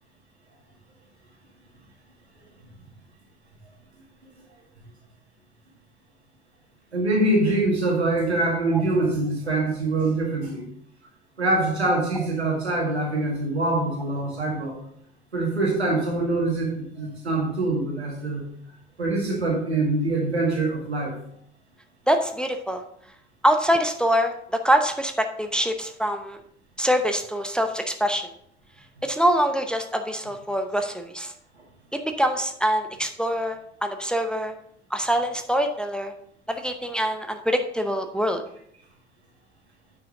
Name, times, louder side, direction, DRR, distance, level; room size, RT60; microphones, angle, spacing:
voice 1, 6.9-10.6 11.4-14.8 15.3-18.5 19.0-21.1, right 2 dB, 85° right, -1 dB, 1.9 m, -24 dB
voice 2, 22.1-22.8 23.4-26.4 26.8-28.3 29.0-31.3 31.9-34.5 34.9-36.1 36.5-38.4, equal, 5° left, 6 dB, 0.7 m, -24 dB
8.9 x 5.8 x 3.7 m, 0.69 s
figure-of-eight pair, 60°, 32 cm